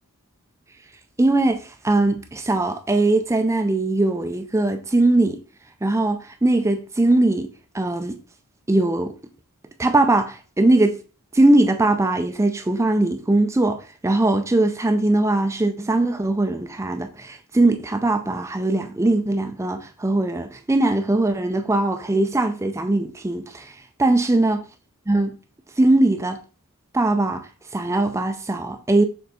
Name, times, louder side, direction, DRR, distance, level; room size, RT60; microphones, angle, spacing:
voice 1, 1.2-5.4 5.8-7.5 7.7-8.2 8.7-9.1 9.8-11.0 11.3-24.6 25.1-25.4 25.8-26.4 26.9-29.0, right 2 dB, 15° right, 0.4 m, -20 dB
6.9 x 3.6 x 4.1 m
head